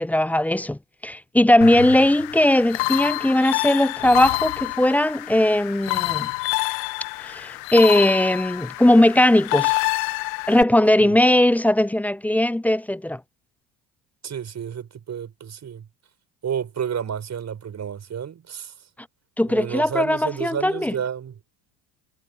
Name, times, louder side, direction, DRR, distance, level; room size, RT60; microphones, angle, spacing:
voice 1, 0.0-6.3 7.2-9.8 10.5-13.2 19.4-20.9, left 1 dB, 5° left, 0.5 m, -19 dB
sound 1, 1.6-10.6, left 31 dB, 60° left, 1.7 m, -27 dB
voice 2, 14.2-15.8 16.4-18.7 19.5-21.4, right 8 dB, 35° right, 6.5 m, -31 dB
hypercardioid pair, 70°, 47 cm